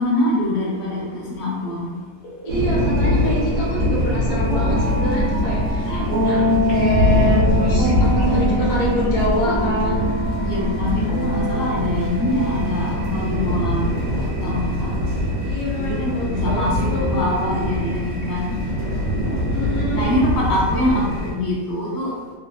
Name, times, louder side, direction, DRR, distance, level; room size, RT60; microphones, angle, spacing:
voice 1, 0.0-1.9 5.9-6.5 7.7-8.7 10.4-15.0 15.8-18.7 19.9-22.2, left 1 dB, 60° left, -4 dB, 1.0 m, -25 dB
sound 1, 2.2-4.5 6.7-9.1 9.5-9.7, right 1 dB, 85° left, 1.1 m, -38 dB
voice 2, 2.4-10.2 15.4-17.1 19.5-20.2, left 1 dB, 40° left, -6 dB, 0.9 m, -26 dB
sound 2, 2.5-21.3, left 1 dB, 80° right, 1.4 m, -23 dB
sound 3, 4.5-13.6, equal, 60° right, 0.5 m, -24 dB
3.3 x 3.0 x 2.3 m, 1.4 s
omnidirectional pair, 1.4 m